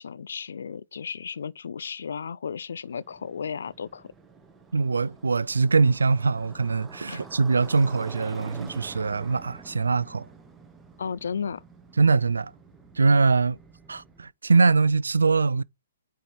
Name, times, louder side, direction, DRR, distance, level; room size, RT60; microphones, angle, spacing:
voice 1, 0.0-4.1 7.1-7.2 11.0-11.6, left 6 dB, 70° left, 0.4 m, -34 dB
Motorcycle, 2.9-14.3, right 5 dB, 10° right, 1.2 m, -47 dB
voice 2, 4.7-10.3 12.0-12.5 13.0-13.6 13.9-15.6, right 4 dB, 85° right, 0.3 m, -22 dB
9.1 x 4.4 x 3.4 m
hypercardioid pair, 135°, 0 cm